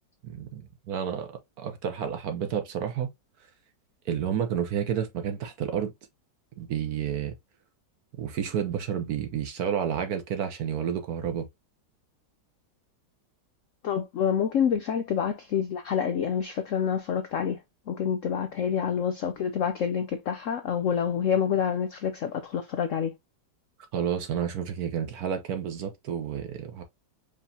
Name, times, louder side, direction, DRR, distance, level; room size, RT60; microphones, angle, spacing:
voice 1, 0.2-3.1 4.1-5.9 6.6-7.3 8.2-11.5 23.9-26.8, right 8 dB, 65° right, 1.2 m, -30 dB
voice 2, 13.8-17.6 17.9-23.1, left 7 dB, 75° left, 0.7 m, -27 dB
4.9 x 3.2 x 2.7 m
omnidirectional pair, 1.9 m